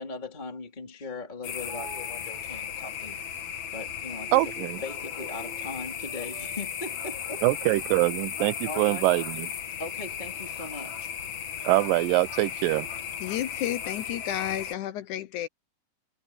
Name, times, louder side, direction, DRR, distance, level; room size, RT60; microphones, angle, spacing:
voice 1, 0.0-3.2 3.7-7.4 8.6-9.1 9.8-11.2, left 3 dB, 15° left, 3.0 m, -39 dB
sound 1, 1.2-14.1, right 3 dB, 30° right, 6.3 m, -52 dB
sound 2, 1.4-14.7, left 8 dB, 55° left, 2.6 m, -36 dB
voice 2, 4.3-4.8 7.4-9.5 11.6-12.9, right 21 dB, 80° right, 2.1 m, -24 dB
voice 3, 13.2-15.5, left 12 dB, 70° left, 2.0 m, -31 dB
omnidirectional pair, 4.3 m